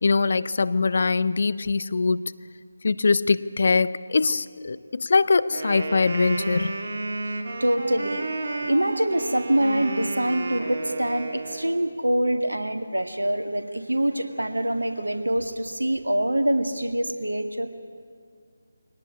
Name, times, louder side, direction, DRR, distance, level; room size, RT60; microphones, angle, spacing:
voice 1, 0.0-2.3 2.8-6.7, left 4 dB, 50° left, 17 dB, 0.6 m, -22 dB
Wind instrument woodwind instrument, 5.5-11.8, right 3 dB, 50° right, 2.3 m, -32 dB
voice 2, 7.6-8.3 8.6-17.7, right 1 dB, 80° right, 7 dB, 2.0 m, -25 dB
23.0 x 18.0 x 9.7 m, 2.1 s
figure-of-eight pair, 155°, 0 cm